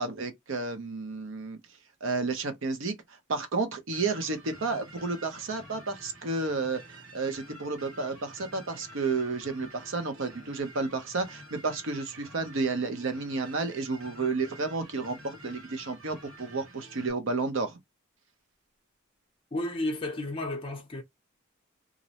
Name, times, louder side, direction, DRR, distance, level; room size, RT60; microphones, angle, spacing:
voice 1, 0.0-1.6 2.0-2.9 3.3-6.8 7.1-17.8, right 3 dB, 65° right, 0.7 m, -31 dB
sound 1, 3.9-17.1, right 1 dB, 85° right, 1.2 m, -49 dB
voice 2, 19.5-21.0, left 1 dB, 25° left, 0.5 m, -32 dB
2.5 x 2.0 x 2.8 m
head